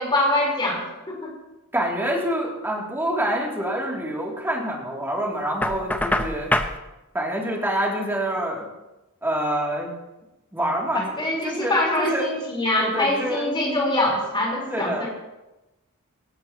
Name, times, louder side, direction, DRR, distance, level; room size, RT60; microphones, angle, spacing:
voice 1, 0.0-1.3 10.9-15.1, left 1 dB, 25° left, -3 dB, 4.4 m, -24 dB
voice 2, 1.7-6.5 7.1-8.7 9.2-9.9 10.5-12.3 12.8-13.5 14.7-15.1, right 1 dB, 10° right, -3 dB, 3.0 m, -26 dB
Knock, 5.6-6.8, left 1 dB, 10° left, 0.7 m, -24 dB
18.0 x 16.5 x 3.1 m, 1.0 s
head